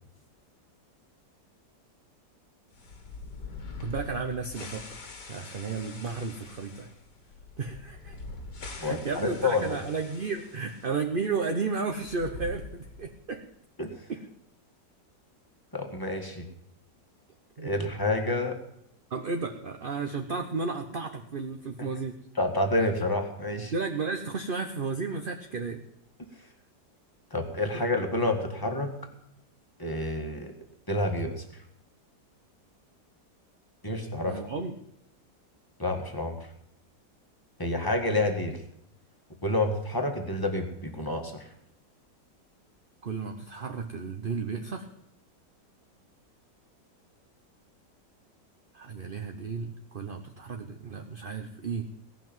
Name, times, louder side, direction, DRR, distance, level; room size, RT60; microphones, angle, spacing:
sound 1, 2.7-10.9 11.2-11.3 11.9-13.3, left 3 dB, 70° left, 2.5 m, -44 dB
voice 1, 3.8-6.9 7.6-8.2 8.8-13.4 14.1-14.2 17.6-17.7 19.1-22.2 23.6-25.8 27.7-27.8 34.2-34.8 43.0-44.9 48.7-51.9, right 4 dB, 40° right, 5 dB, 0.8 m, -33 dB
voice 2, 8.8-9.8 13.8-13.9 15.7-16.5 17.6-18.6 21.8-21.9 22.4-23.7 27.3-28.9 29.8-30.5 30.9-31.4 33.8-34.4 35.8-36.4 37.6-38.6 39.4-41.5, left 2 dB, 10° left, 3 dB, 1.8 m, -28 dB
17.5 x 6.0 x 9.0 m, 0.76 s
omnidirectional pair, 1.9 m